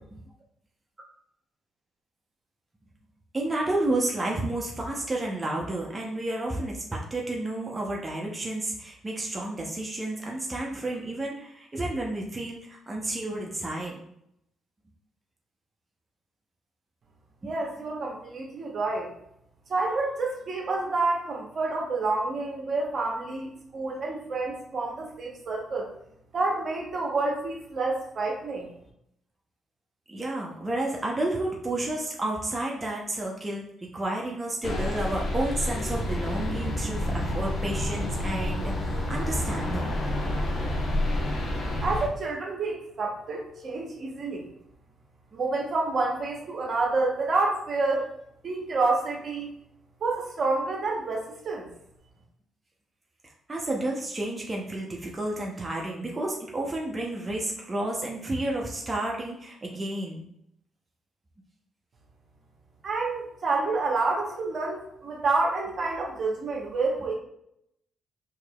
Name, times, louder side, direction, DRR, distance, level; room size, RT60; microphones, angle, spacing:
voice 1, 3.3-14.0 17.4-17.5 30.1-33.7 33.9-39.9 53.5-60.2, right 2 dB, 25° right, -2 dB, 0.8 m, -31 dB
voice 2, 17.4-19.1 19.7-25.9 26.3-28.7 41.8-44.5 45.3-48.1 48.4-49.5 50.0-51.7 62.8-67.1, right 3 dB, 55° right, -1 dB, 1.0 m, -28 dB
sound 1, 34.6-42.1, left 1 dB, 60° left, 1.0 m, -29 dB
Bowed string instrument, 35.1-41.1, left 2 dB, 30° left, 0.5 m, -42 dB
4.7 x 2.8 x 2.3 m, 0.75 s
supercardioid pair, 65°, 0 cm